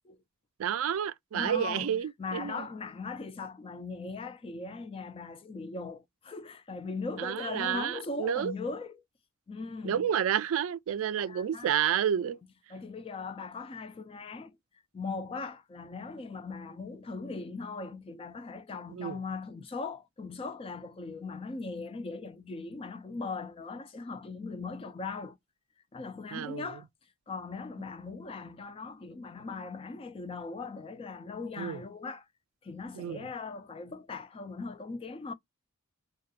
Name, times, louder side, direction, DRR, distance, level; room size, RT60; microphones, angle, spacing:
voice 1, 0.6-2.6 7.2-8.5 9.8-12.4 18.9-19.2 26.3-26.7 31.6-31.8 33.0-33.3, right 9 dB, 65° right, 0.3 m, -30 dB
voice 2, 1.3-9.0 9.5-10.1 11.2-11.7 12.7-14.6 14.9-25.4 25.9-26.9 27.3-32.3 32.6-35.3, left 4 dB, 25° left, 0.3 m, -39 dB
2.4 x 2.1 x 2.6 m
head